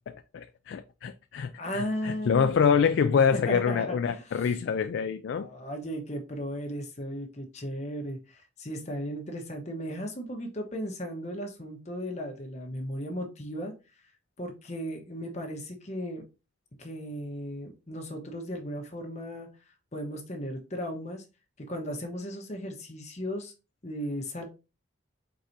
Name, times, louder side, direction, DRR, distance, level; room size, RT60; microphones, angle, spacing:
voice 1, 0.3-5.5, left 6 dB, 70° left, 0.3 m, -26 dB
voice 2, 1.6-2.5 3.3-4.5 5.3-13.7 14.4-16.2 16.8-19.5 19.9-21.2 21.7-23.5 23.8-24.4, equal, 35° left, 1.1 m, -36 dB
4.5 x 4.0 x 2.6 m
head